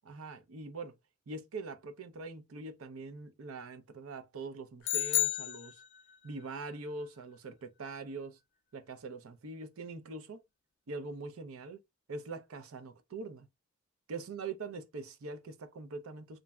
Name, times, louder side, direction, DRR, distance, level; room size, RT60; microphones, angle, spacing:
voice 1, 0.0-0.9 1.3-5.8 6.2-8.4 8.7-10.4 10.9-11.8 12.1-13.5 14.1-16.4, right 3 dB, 80° right, 0.5 m, -43 dB
sound 1, 4.8-6.3, left 16 dB, 60° left, 0.3 m, -31 dB
3.1 x 2.5 x 2.2 m
head